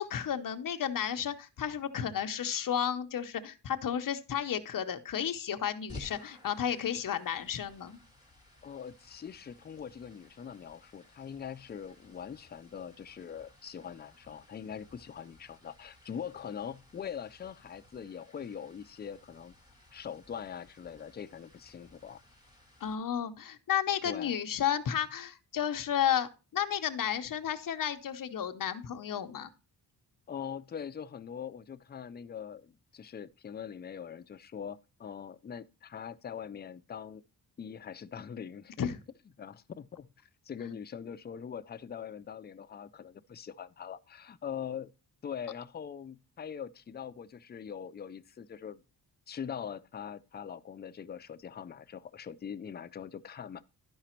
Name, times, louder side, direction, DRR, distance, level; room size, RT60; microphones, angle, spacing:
voice 1, 0.0-8.0 22.8-29.5 38.8-39.0 40.6-40.7, left 9 dB, 55° left, 0.8 m, -32 dB
sound 1, 5.9-22.9, left 1 dB, 10° right, 2.2 m, -56 dB
voice 2, 8.6-19.5 19.9-22.2 24.0-24.4 30.3-37.2 37.6-38.9 39.4-40.1 40.4-44.9 45.2-48.8 49.3-53.6, left 8 dB, 25° left, 0.3 m, -42 dB
12.0 x 4.9 x 4.4 m
wide cardioid pair, 165°, 40 cm